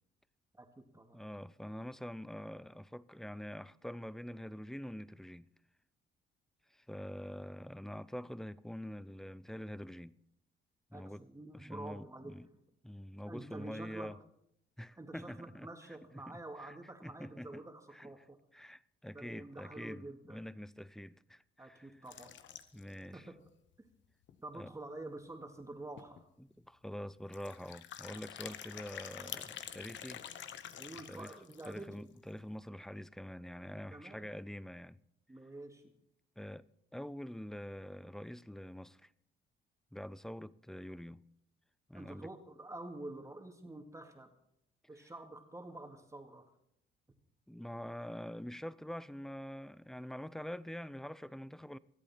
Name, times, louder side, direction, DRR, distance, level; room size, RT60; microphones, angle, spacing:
voice 1, 0.5-1.2 10.9-12.3 13.2-14.1 15.0-18.4 19.1-20.4 21.6-22.3 23.1-23.4 24.4-26.3 30.8-31.9 33.9-34.3 35.3-35.8 41.9-44.3 44.9-46.4, right 2 dB, 15° right, 2.2 m, -48 dB
voice 2, 1.1-5.5 6.7-10.2 10.9-11.2 11.5-12.5 12.8-14.2 14.8-15.7 16.2-16.7 17.0-17.6 17.9-18.1 18.5-21.9 22.7-23.3 24.5-24.7 26.4-30.3 31.1-31.3 31.7-35.0 36.4-36.7 36.9-39.1 39.9-41.2 41.9-42.3 47.5-51.8, equal, ahead, 0.5 m, -45 dB
Indoor Wine Glasses Pour Water, 22.1-23.0 23.5-23.6 23.7-23.8 24.3-24.4 25.6-25.7 26.0-26.2 27.3-31.9, left 9 dB, 70° left, 1.0 m, -47 dB
25.5 x 8.6 x 4.3 m
cardioid pair, 90°, 20 cm